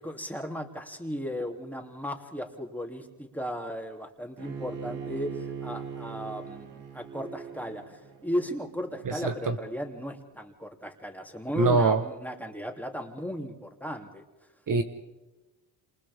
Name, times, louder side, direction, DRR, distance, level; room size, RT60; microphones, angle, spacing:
voice 1, 0.0-14.2, equal, 5° left, 2 dB, 3.1 m, -36 dB
Bowed string instrument, 4.4-9.5, right 6 dB, 80° right, 3.0 m, -41 dB
voice 2, 9.1-9.5 11.5-12.0 14.7-14.8, right 4 dB, 50° right, 7 dB, 1.5 m, -24 dB
28.0 x 27.5 x 3.7 m, 1.1 s
supercardioid pair, 65°, 42 cm